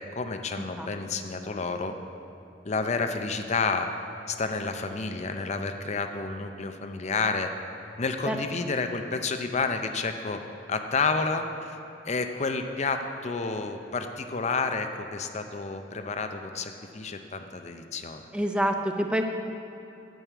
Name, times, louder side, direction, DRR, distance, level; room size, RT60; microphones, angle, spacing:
voice 1, 0.0-2.0 2.6-3.9 4.3-7.5 8.0-10.4 10.7-11.8 12.1-18.3, left 4 dB, 40° left, 6 dB, 0.6 m, -30 dB
voice 2, 18.3-19.2, equal, 5° right, 4 dB, 0.5 m, -26 dB
9.1 x 6.3 x 8.1 m, 2.9 s
head